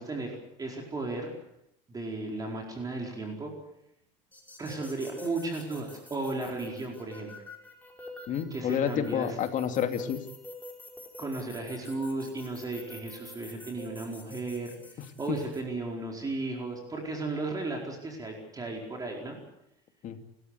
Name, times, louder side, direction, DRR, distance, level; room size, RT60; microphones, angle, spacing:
voice 1, 0.0-1.3 1.9-3.5 4.6-7.3 8.5-9.4 11.2-19.4, right 2 dB, 20° right, 1 dB, 4.6 m, -35 dB
sound 1, 4.3-15.6, left 1 dB, 10° left, 5.2 m, -48 dB
voice 2, 8.3-10.2 20.0-20.2, left 8 dB, 50° left, 7 dB, 2.6 m, -29 dB
29.5 x 14.0 x 8.2 m, 0.81 s
cardioid pair, 120°, 17 cm